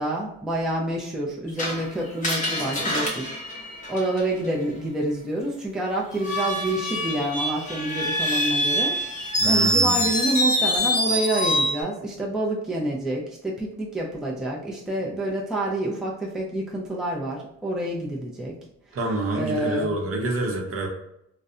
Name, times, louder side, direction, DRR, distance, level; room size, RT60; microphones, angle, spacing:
voice 1, 0.0-3.3 3.9-18.5 19.3-20.0, right 1 dB, ahead, -3 dB, 0.5 m, -28 dB
Screech, 1.6-4.5 6.1-11.8, equal, 25° left, 0.8 m, -25 dB
voice 2, 9.4-10.1 18.9-20.9, right 1 dB, 45° right, 0 dB, 0.7 m, -27 dB
2.5 x 2.1 x 2.4 m, 0.78 s
cardioid pair, 90°, 30 cm